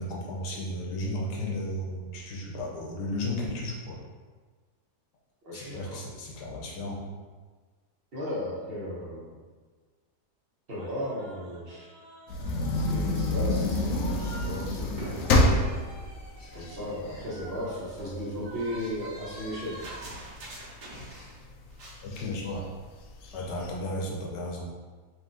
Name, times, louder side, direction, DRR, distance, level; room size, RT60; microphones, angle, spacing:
voice 1, 0.0-4.0 5.5-7.0 22.0-22.6 23.3-24.7, left 1 dB, 90° left, -2 dB, 1.4 m, -34 dB
voice 2, 5.4-6.0 8.1-9.4 10.7-11.9 12.7-15.5 16.5-19.8, equal, 45° right, -8 dB, 0.9 m, -36 dB
sound 1, 10.8-14.5 14.8-21.5 21.7-22.0, right 1 dB, 80° right, 1.5 m, -45 dB
sound 2, 12.3-17.5 18.0-18.1 18.4-20.5 21.0-21.5 22.1-22.2 22.5-22.6 23.1-23.7, left 2 dB, 70° left, 0.8 m, -27 dB
4.2 x 2.6 x 3.7 m, 1.4 s
omnidirectional pair, 1.8 m